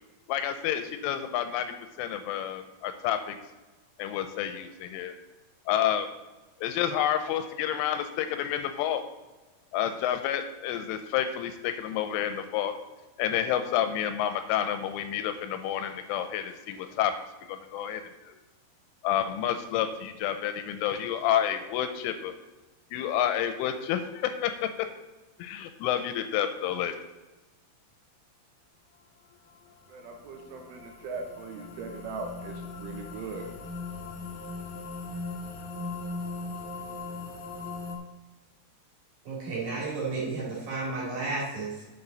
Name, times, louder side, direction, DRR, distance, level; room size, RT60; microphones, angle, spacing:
voice 1, 0.3-1.7 2.0-3.4 4.0-5.1 5.7-6.1 6.6-9.0 9.7-12.7 13.2-17.1 17.4-18.4 19.0-22.3 22.9-24.9 25.4-27.0, left 10 dB, 85° left, 8 dB, 3.0 m, -29 dB
sound 1, 29.5-38.0, left 3 dB, 65° left, 2.6 m, -39 dB
voice 2, 29.9-33.5, right 4 dB, 80° right, 3 dB, 3.3 m, -39 dB
voice 3, 39.2-41.8, right 3 dB, 45° right, -5 dB, 3.3 m, -32 dB
9.6 x 7.0 x 3.9 m, 1.1 s
omnidirectional pair, 5.8 m